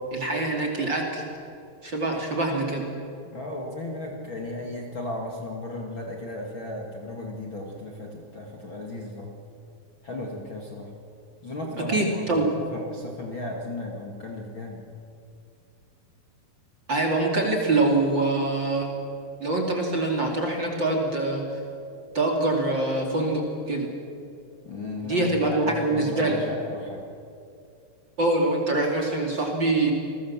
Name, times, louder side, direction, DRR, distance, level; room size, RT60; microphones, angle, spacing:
voice 1, 0.1-1.2 1.8-2.9 11.9-12.5 16.9-18.9 19.4-21.4 22.1-23.9 25.0-26.4 28.2-29.9, right 2 dB, 30° right, 0 dB, 2.9 m, -24 dB
voice 2, 3.2-9.4 10.0-10.9 11.4-14.8 24.6-27.1, left 1 dB, 40° left, 0 dB, 2.3 m, -35 dB
30.0 x 20.5 x 7.4 m, 2.5 s
omnidirectional pair, 4.4 m